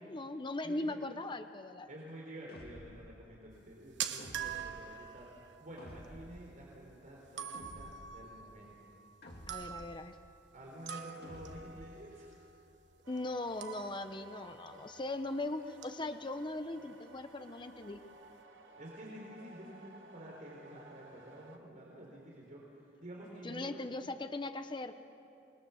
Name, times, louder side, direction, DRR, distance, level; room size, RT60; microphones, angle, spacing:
voice 1, 0.0-1.9 9.5-10.2 13.1-18.0 23.4-24.9, left 2 dB, 25° left, 9 dB, 0.7 m, -39 dB
voice 2, 0.6-1.0 1.9-8.9 10.5-12.4 17.5-17.6 18.8-23.8, right 1 dB, 45° right, -3 dB, 4.0 m, -50 dB
sound 1, 2.5-3.1 4.2-4.9 5.8-6.4 7.5-8.2 9.2-9.9 11.2-11.9, equal, 55° left, 2.7 m, -51 dB
sound 2, 3.5-15.5 15.7-16.1 16.4-16.6 17.2-17.3 17.5-18.1, right 8 dB, 65° right, 1.1 m, -46 dB
sound 3, 13.0-21.6, right 2 dB, 85° right, 2.0 m, -57 dB
26.5 x 20.5 x 7.1 m, 2.6 s
head